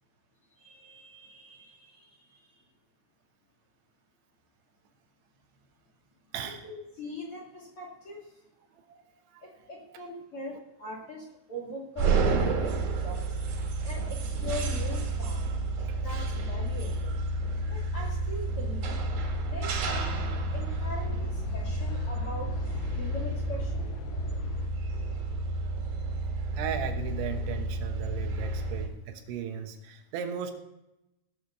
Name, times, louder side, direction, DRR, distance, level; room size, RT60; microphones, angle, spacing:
voice 1, 0.6-2.6 6.4-8.3 9.4-13.4 13.8-15.5 16.0-17.2 17.7-19.0 19.4-22.5 22.9-23.9, equal, 35° left, -3 dB, 2.7 m, -42 dB
sound 1, 12.0-28.9, right 3 dB, 60° right, 3.3 m, -30 dB
sound 2, 17.4-24.7, left 8 dB, 85° left, 3.1 m, -41 dB
voice 2, 26.5-30.5, right 8 dB, 85° right, 5 dB, 3.6 m, -36 dB
17.5 x 6.6 x 6.7 m, 0.89 s
omnidirectional pair, 5.3 m